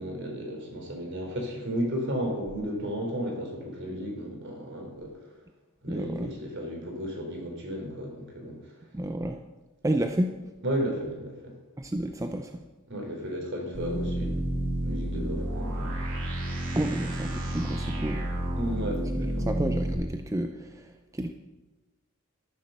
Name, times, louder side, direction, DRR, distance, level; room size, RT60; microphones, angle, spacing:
voice 1, 0.0-5.2 5.8-8.6 10.6-11.5 12.9-14.5 14.8-15.9 18.5-19.5, equal, 55° right, 1 dB, 3.5 m, -33 dB
voice 2, 5.9-6.3 8.9-9.4 9.8-10.3 11.8-12.6 16.7-18.2 19.2-21.3, right 1 dB, 15° right, 6 dB, 0.5 m, -31 dB
sound 1, 13.7-19.9, right 1 dB, 75° right, 2.7 m, -30 dB
14.0 x 7.5 x 6.7 m, 1.2 s
head